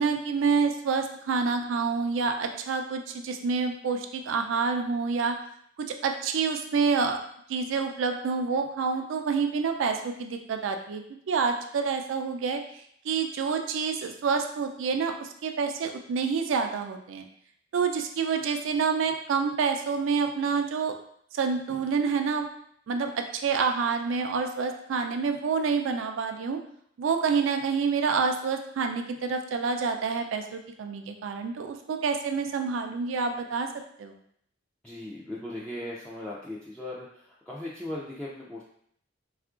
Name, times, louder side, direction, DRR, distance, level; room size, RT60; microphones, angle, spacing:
voice 1, 0.0-5.4 5.8-7.2 7.5-11.0 11.3-12.6 13.0-17.3 17.7-20.9 21.3-22.5 22.9-26.6 27.0-33.7 34.0-34.2, right 5 dB, 80° right, 6 dB, 0.3 m, -28 dB
voice 2, 34.8-38.6, left 1 dB, 5° left, -7 dB, 0.3 m, -38 dB
3.6 x 2.4 x 2.3 m, 0.66 s
head